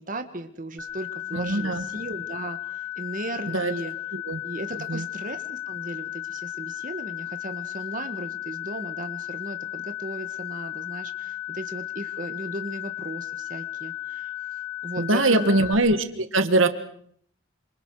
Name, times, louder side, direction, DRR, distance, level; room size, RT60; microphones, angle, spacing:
voice 1, 0.0-3.9 4.4-14.3 14.8-15.6, right 1 dB, 40° right, 7 dB, 1.6 m, -36 dB
sound 1, 0.8-15.7, left 16 dB, 75° left, 4.5 m, -35 dB
voice 2, 1.3-1.8 3.5-3.7 4.1-4.4 4.9-5.1 15.0-16.7, right 2 dB, 80° right, 9 dB, 1.8 m, -22 dB
27.5 x 26.5 x 4.9 m, 0.64 s
head